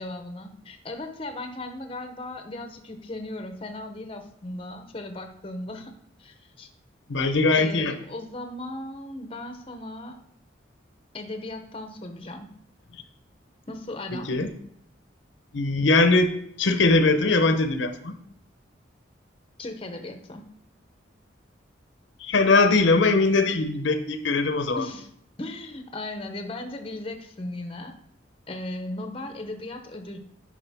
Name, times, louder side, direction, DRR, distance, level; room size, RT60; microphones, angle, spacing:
voice 1, 0.0-5.9 6.2-6.7 7.6-10.2 11.1-12.5 13.7-14.3 19.6-20.4 24.8-25.1 25.4-27.9 28.5-30.2, left 1 dB, 30° left, 6 dB, 0.7 m, -37 dB
voice 2, 7.1-7.9 14.3-14.5 15.5-16.3 16.6-18.1 22.2-24.9, left 3 dB, 75° left, 8 dB, 0.7 m, -21 dB
9.8 x 4.9 x 3.5 m, 0.71 s
head